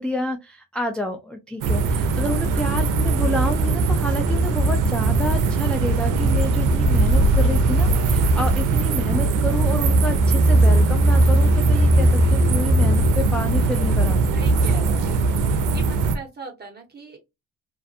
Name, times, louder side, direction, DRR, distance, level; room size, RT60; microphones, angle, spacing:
voice 1, 0.0-14.3, left 1 dB, 5° left, 3 dB, 0.4 m, -29 dB
sound 1, 1.6-16.2, right 2 dB, 85° right, 0.5 m, -19 dB
voice 2, 2.5-2.9 14.3-15.2 15.7-17.2, right 4 dB, 35° right, 1 dB, 1.3 m, -40 dB
2.5 x 2.4 x 2.4 m, 0.23 s
cardioid pair, 90°, 30 cm